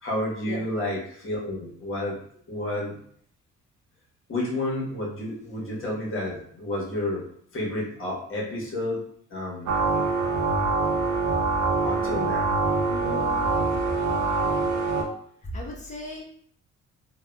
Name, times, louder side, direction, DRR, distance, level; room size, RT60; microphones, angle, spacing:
voice 1, 0.0-2.2 2.5-3.0 4.3-7.3 7.5-9.0 9.3-9.8 11.8-12.5, left 1 dB, 45° left, -4 dB, 1.2 m, -30 dB
sound 1, 9.6-15.0, right 3 dB, 80° right, 0.6 m, -24 dB
voice 2, 12.9-13.8 15.4-16.2, left 1 dB, 25° left, -2 dB, 1.0 m, -37 dB
3.5 x 2.2 x 2.2 m, 0.62 s
cardioid pair, 90°, 30 cm